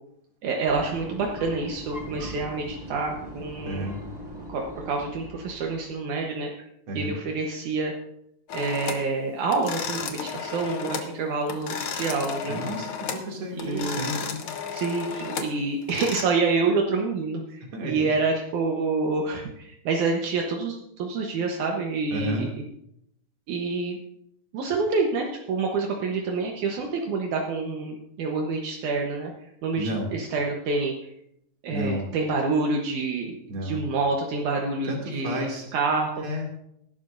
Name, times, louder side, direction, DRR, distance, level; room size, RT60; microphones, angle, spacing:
voice 1, 0.4-4.0 4.5-6.5 7.0-7.9 8.5-12.6 13.5-14.3 14.7-22.5 23.5-24.0 24.5-31.1 31.6-36.2, right 3 dB, 75° right, 1 dB, 2.5 m, -27 dB
sound 1, 0.7-6.3, equal, 25° right, 0.9 m, -40 dB
voice 2, 3.6-4.0 6.9-7.2 12.5-14.4 17.7-18.1 22.1-22.5 29.8-30.1 31.7-32.1 33.5-33.9 34.9-35.7 36.2-36.5, equal, 45° right, 0 dB, 3.2 m, -32 dB
sound 2, 8.5-9.1 9.5-11.1 11.4-13.3 13.6-16.2, left 6 dB, 60° left, 1.4 m, -33 dB
20.0 x 11.5 x 2.6 m, 0.78 s
omnidirectional pair, 3.6 m